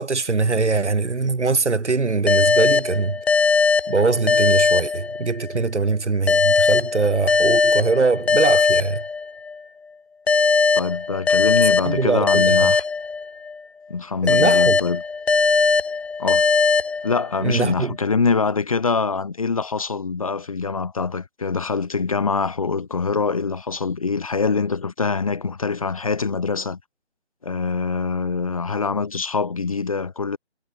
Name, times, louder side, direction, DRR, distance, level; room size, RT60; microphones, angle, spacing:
voice 1, 0.0-3.2 3.9-9.0 11.9-12.8 14.2-14.8 17.4-18.0, right 4 dB, 80° right, 4.0 m, -22 dB
sound 1, 2.3-5.6 6.3-9.6 10.3-13.6 14.3-17.6, left 4 dB, 65° left, 2.5 m, -20 dB
voice 2, 10.7-12.8 13.9-15.0 16.2-16.4 17.0-26.8 27.4-30.4, left 4 dB, 30° left, 1.4 m, -24 dB
hypercardioid pair, 175°, 34 cm